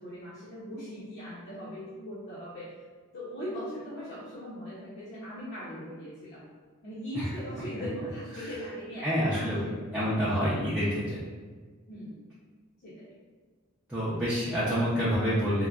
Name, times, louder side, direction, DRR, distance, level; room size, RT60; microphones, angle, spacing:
voice 1, 0.0-2.7 3.1-6.4 6.8-9.9 11.9-12.2 12.8-13.2, equal, 50° left, -10 dB, 0.7 m, -40 dB
voice 2, 9.0-9.6 9.9-11.2 13.9-15.7, equal, 5° right, -11 dB, 0.5 m, -27 dB
3.7 x 2.1 x 2.3 m, 1.5 s
head